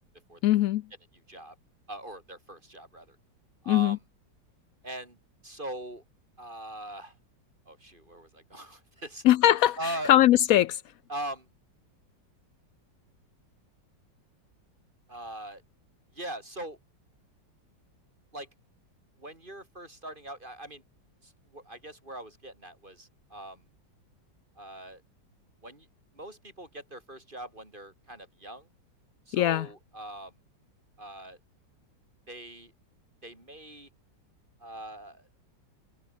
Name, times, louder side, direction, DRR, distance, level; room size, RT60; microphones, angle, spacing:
voice 1, 0.4-0.8 3.7-4.0 9.2-9.8 10.1-10.8 29.3-29.7, left 13 dB, 90° left, 0.7 m, -20 dB
voice 2, 1.1-1.6 1.9-3.2 3.6-4.0 4.8-5.2 5.4-6.0 6.4-7.2 7.7-9.2 9.8-10.2 11.1-11.5 15.1-15.6 16.1-16.8 18.3-18.5 19.2-20.8 21.2-23.7 24.6-25.0 25.6-25.9 26.1-28.7 29.3-30.3 31.0-31.4 32.3-32.7 33.2-33.9 34.6-35.3, right 1 dB, 25° right, 6.3 m, -41 dB
omnidirectional pair, 2.0 m